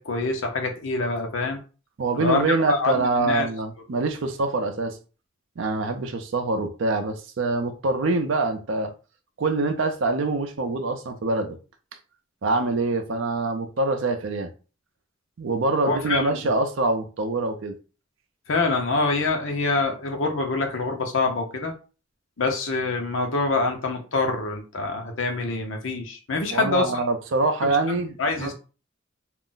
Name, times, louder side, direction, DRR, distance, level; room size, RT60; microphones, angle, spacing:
voice 1, 0.0-1.6 2.1-3.5 15.8-16.4 18.5-21.7 22.4-27.0 27.9-28.5, left 3 dB, 75° left, 0.7 m, -25 dB
voice 2, 2.0-5.0 5.6-8.9 9.4-11.6 12.4-14.5 15.4-17.7 26.5-28.5, right 3 dB, 70° right, 0.5 m, -25 dB
2.4 x 2.0 x 3.8 m
head